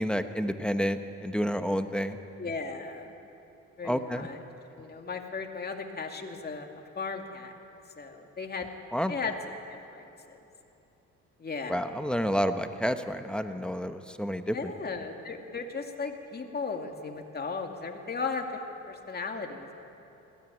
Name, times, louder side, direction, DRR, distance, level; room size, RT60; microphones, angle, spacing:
voice 1, 0.0-2.2 3.8-4.3 8.9-9.1 11.7-14.7, equal, 5° left, 8 dB, 1.1 m, -29 dB
voice 2, 2.0-3.1 3.8-4.4 4.8-6.7 7.0-7.5 8.0-8.7 9.1-9.3 9.9-10.4 11.4-11.9 14.5-18.6 18.9-19.7, left 4 dB, 30° left, 3 dB, 2.4 m, -36 dB
21.0 x 16.0 x 9.3 m, 2.9 s
cardioid pair, 90°, 30 cm